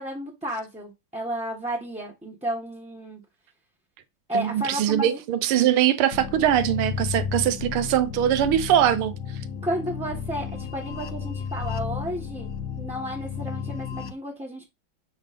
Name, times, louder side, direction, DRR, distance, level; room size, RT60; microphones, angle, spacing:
voice 1, 0.0-3.2 4.3-5.2 9.6-12.5 12.8-14.6, right 1 dB, 5° right, 1.1 m, -32 dB
voice 2, 4.3-9.1, right 11 dB, 90° right, 1.6 m, -22 dB
sound 1, 6.1-14.1, left 7 dB, 60° left, 0.9 m, -33 dB
7.2 x 3.3 x 5.2 m
omnidirectional pair, 2.3 m